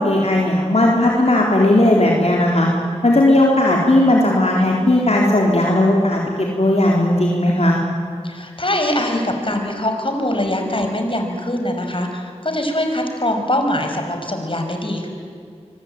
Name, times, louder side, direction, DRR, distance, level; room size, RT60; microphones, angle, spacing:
voice 1, 0.0-2.7 3.0-7.8, left 1 dB, 65° left, -2 dB, 4.0 m, -16 dB
voice 2, 8.2-15.1, left 1 dB, 50° left, 4 dB, 5.6 m, -22 dB
25.5 x 24.0 x 9.2 m, 2.2 s
wide cardioid pair, 40°, 12 cm